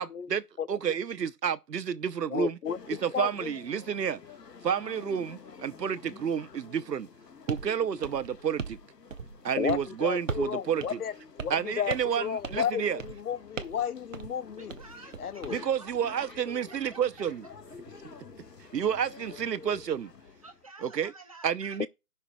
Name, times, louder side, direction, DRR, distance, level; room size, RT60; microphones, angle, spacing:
voice 1, 0.0-2.6 2.9-4.2 4.6-7.1 7.5-8.8 9.4-11.0 11.5-13.0 15.5-17.4 18.7-20.1 20.8-21.1 21.4-21.9, right 8 dB, 85° right, 0.9 m, -30 dB
voice 2, 2.3-2.8 3.1-3.5 9.6-14.7 15.2-15.7 21.8-21.9, left 8 dB, 65° left, 0.7 m, -33 dB
sound 1, 2.6-20.7, left 5 dB, 85° left, 1.6 m, -51 dB
sound 2, 7.5-7.7 8.0-8.8 9.1-9.4 9.7-9.9 10.3-10.5 10.8-10.9 11.4-11.6 11.9-12.2 12.4-12.7 13.0-13.2 13.6-13.8 14.1-14.3 14.7-15.6, right 5 dB, 50° right, 0.9 m, -37 dB
sound 3, 14.1-19.3, left 1 dB, 5° left, 1.6 m, -57 dB
voice 3, 14.6-16.3 16.7-17.0 20.4-21.9, right 3 dB, 20° right, 0.9 m, -50 dB
17.0 x 5.9 x 2.3 m
hypercardioid pair, 175°, 48 cm